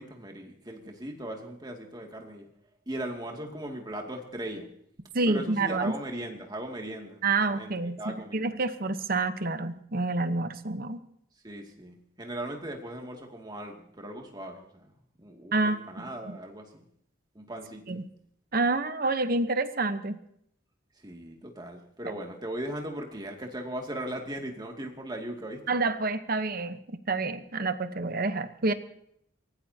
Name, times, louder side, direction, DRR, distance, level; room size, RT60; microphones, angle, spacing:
voice 1, 0.0-2.5 2.9-4.7 5.3-8.5 11.4-14.9 15.2-16.8 17.3-17.8 20.9-25.6, right 1 dB, 20° right, 2 dB, 2.4 m, -38 dB
voice 2, 5.1-6.0 7.2-11.0 15.5-15.8 17.9-18.0 18.5-20.2 25.7-26.8 27.1-28.7, right 3 dB, 50° right, 10 dB, 1.0 m, -28 dB
24.0 x 18.0 x 2.9 m, 0.71 s
head